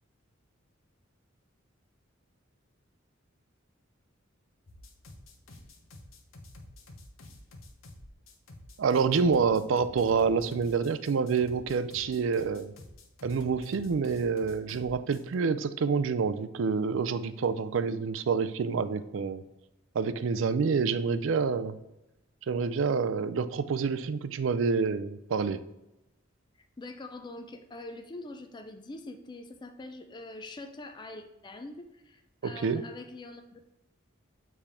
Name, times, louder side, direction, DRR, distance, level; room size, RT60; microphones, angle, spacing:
sound 1, 4.7-15.3, left 1 dB, 85° left, 1.0 m, -49 dB
voice 1, 8.8-12.7 13.2-19.4 19.9-21.8 22.4-25.6 32.4-32.8, right 5 dB, 70° right, 12 dB, 0.4 m, -27 dB
voice 2, 26.8-33.8, left 2 dB, 20° left, 6 dB, 0.4 m, -44 dB
6.9 x 3.6 x 4.2 m, 0.92 s
head